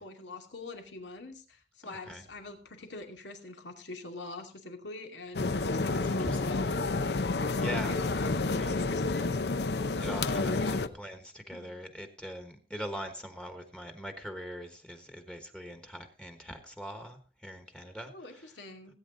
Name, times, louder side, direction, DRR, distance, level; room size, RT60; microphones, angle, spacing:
voice 1, 0.0-6.9 7.4-9.3 9.9-10.8 11.5-11.7 18.1-18.9, left 3 dB, 90° left, 4 dB, 2.5 m, -44 dB
voice 2, 1.8-2.2 5.9-6.4 7.6-8.0 8.6-8.7 10.0-18.4, equal, 5° left, 6 dB, 1.3 m, -42 dB
sound 1, 5.3-10.9, left 3 dB, 65° left, 0.7 m, -30 dB
17.5 x 8.9 x 3.8 m, 0.37 s
head